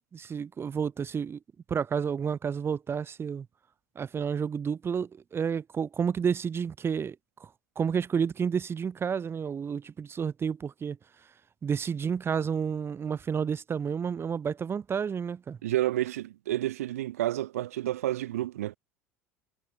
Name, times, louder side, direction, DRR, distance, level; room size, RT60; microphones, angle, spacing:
voice 1, 0.1-1.4 1.7-3.5 3.9-7.5 7.7-11.0 11.6-15.6, right 7 dB, 30° right, 3.3 m, -30 dB
voice 2, 15.6-18.8, right 14 dB, 70° right, 2.1 m, -30 dB
figure-of-eight pair, 70°, 8 cm